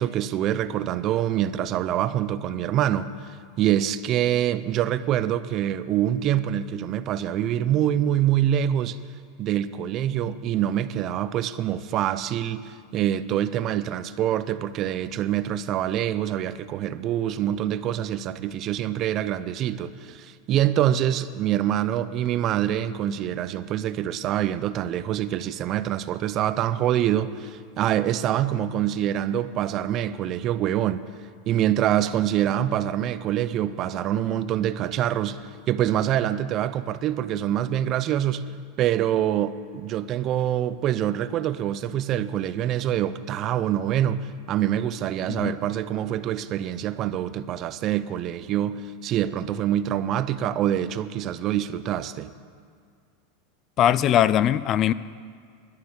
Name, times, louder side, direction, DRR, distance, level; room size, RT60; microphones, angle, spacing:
voice 1, 0.0-3.1 3.6-9.0 9.4-31.1 31.5-38.4 38.8-52.3, right 11 dB, 40° right, 0.5 m, -25 dB
voice 2, 53.8-54.9, left 11 dB, 35° left, 0.3 m, -20 dB
11.5 x 6.8 x 9.6 m
supercardioid pair, 130°, 0 cm